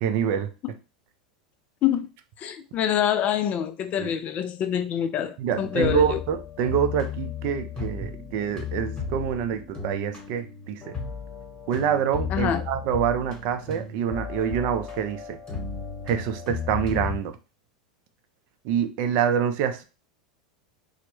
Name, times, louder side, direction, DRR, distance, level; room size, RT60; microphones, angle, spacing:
voice 1, 0.0-0.5 4.0-4.1 5.4-10.8 11.7-15.4 16.1-17.3 18.6-19.8, right 8 dB, 55° right, 0.4 m, -26 dB
voice 2, 2.4-6.2 12.3-12.6, left 9 dB, 35° left, 0.3 m, -26 dB
sound 1, 5.5-17.2, left 5 dB, 20° left, 1.0 m, -34 dB
2.1 x 2.0 x 2.9 m
hypercardioid pair, 110°, 4 cm